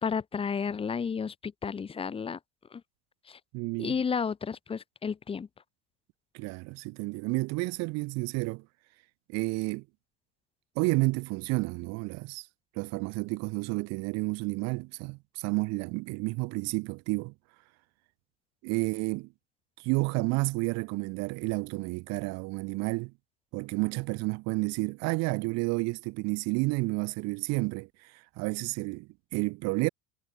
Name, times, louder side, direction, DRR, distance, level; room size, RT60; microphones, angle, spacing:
voice 1, 0.0-2.4 2.7-2.8 3.3-3.4 3.8-5.5, left 6 dB, 20° left, 3.2 m, -32 dB
voice 2, 3.5-4.0 6.3-8.7 9.3-9.8 10.8-12.5 12.8-17.3 18.6-19.3 19.8-23.1 23.5-29.9, right 26 dB, 60° right, 3.7 m, -31 dB
cardioid pair, 165°, 29 cm